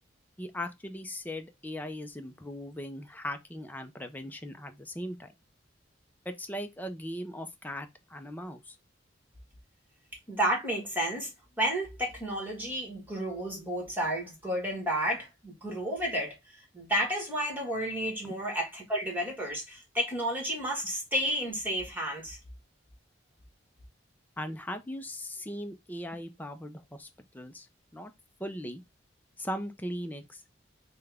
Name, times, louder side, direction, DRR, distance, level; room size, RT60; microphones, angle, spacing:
voice 1, 0.4-5.3 6.2-8.8 18.2-18.4 24.4-27.1 27.3-27.7 27.9-28.1 28.4-28.8 29.4-30.4, equal, 10° left, 0.5 m, -39 dB
voice 2, 10.3-11.3 11.6-16.3 16.7-22.4, equal, 10° right, 1.5 m, -31 dB
5.7 x 2.3 x 3.4 m
head